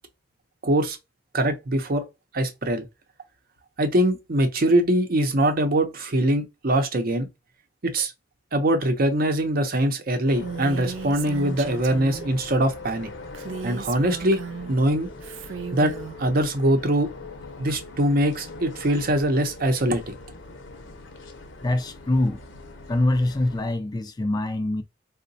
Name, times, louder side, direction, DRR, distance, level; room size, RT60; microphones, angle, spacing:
voice 1, 0.6-1.0 1.3-2.1 2.3-2.8 3.8-7.3 7.8-8.1 8.5-13.1 13.6-15.1 15.7-15.9 16.2-17.1 17.6-20.1, right 1 dB, 50° right, 0.6 m, -22 dB
sound 1, 10.2-23.7, left 2 dB, 75° left, 0.7 m, -41 dB
Female speech woman speaking, 10.4-12.3 13.3-14.7 15.2-16.2, right 6 dB, 90° right, 0.4 m, -36 dB
voice 2, 21.6-22.4 22.9-24.8, left 1 dB, 20° left, 0.3 m, -24 dB
3.8 x 2.1 x 2.6 m
head